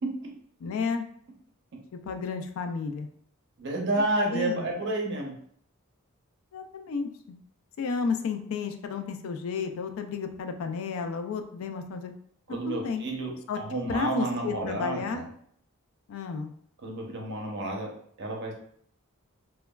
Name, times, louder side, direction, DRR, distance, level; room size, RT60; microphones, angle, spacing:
voice 1, 0.6-1.0 1.9-3.1 4.3-4.7 6.5-7.4 7.8-12.1 12.7-13.0 13.5-13.6 13.9-15.2 16.1-16.5, left 5 dB, 65° left, 6 dB, 0.3 m, -32 dB
voice 2, 3.6-5.3 12.5-15.3 16.8-17.9 18.2-18.5, right 2 dB, 50° right, 0 dB, 0.6 m, -30 dB
2.9 x 2.2 x 2.2 m, 0.64 s
head